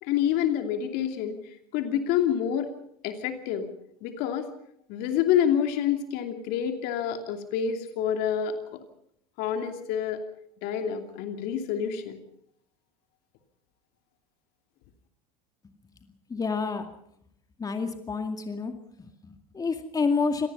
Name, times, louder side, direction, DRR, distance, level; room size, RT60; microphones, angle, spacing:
voice 1, 0.0-2.7 3.0-3.7 4.0-4.5 4.9-8.8 9.4-10.2 10.6-12.2, left 9 dB, 55° left, 6 dB, 2.8 m, -28 dB
voice 2, 16.3-16.9 17.6-18.7 19.0-20.5, left 4 dB, 20° left, 6 dB, 2.2 m, -29 dB
26.0 x 18.0 x 5.6 m, 0.71 s
hypercardioid pair, 85°, 19 cm